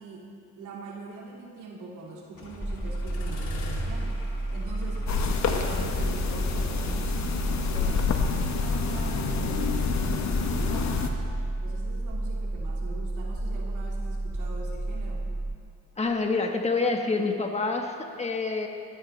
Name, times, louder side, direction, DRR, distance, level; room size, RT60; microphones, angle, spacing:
voice 1, 0.0-4.2 4.5-5.1 5.4-11.3 11.6-15.3, right 3 dB, 80° right, -3 dB, 2.6 m, -42 dB
sound 1, 2.4-8.5, left 2 dB, 80° left, 2.4 m, -42 dB
sound 2, 2.6-15.6, right 2 dB, 5° right, 0.5 m, -31 dB
sound 3, 5.1-11.1, left 6 dB, 65° left, 1.3 m, -28 dB
voice 2, 16.0-18.7, left 3 dB, 20° left, 3 dB, 1.4 m, -27 dB
18.5 x 13.5 x 3.3 m, 2.6 s
cardioid pair, 90°, 30 cm